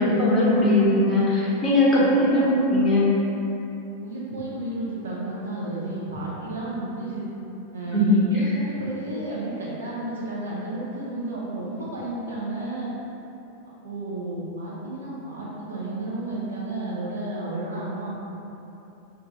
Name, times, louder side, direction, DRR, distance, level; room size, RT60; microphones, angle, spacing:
voice 1, 0.0-2.4 2.7-3.0 7.9-8.0 8.4-8.5, left 1 dB, 20° left, -7 dB, 0.7 m, -19 dB
voice 2, 2.0-2.5 4.0-7.3 7.7-13.0 13.6-18.1, right 2 dB, 70° right, -7 dB, 0.4 m, -32 dB
2.4 x 2.3 x 2.9 m, 3.0 s
figure-of-eight pair, 90°, 0 cm